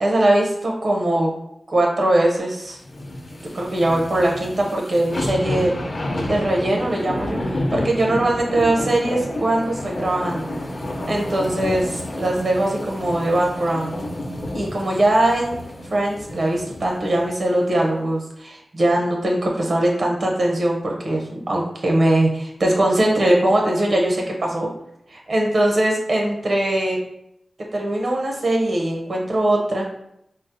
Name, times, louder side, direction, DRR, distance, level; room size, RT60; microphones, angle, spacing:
voice 1, 0.0-1.3 1.7-2.8 3.5-5.8 6.3-10.5 11.1-14.0 14.5-15.6 15.9-24.7 25.1-27.0 27.7-29.8, right 1 dB, 60° right, 0 dB, 0.6 m, -21 dB
sound 1, 2.8-17.3 17.7-17.8, left 1 dB, 50° left, 0.6 m, -30 dB
3.8 x 2.0 x 2.6 m, 0.77 s
wide cardioid pair, 90°, 0 cm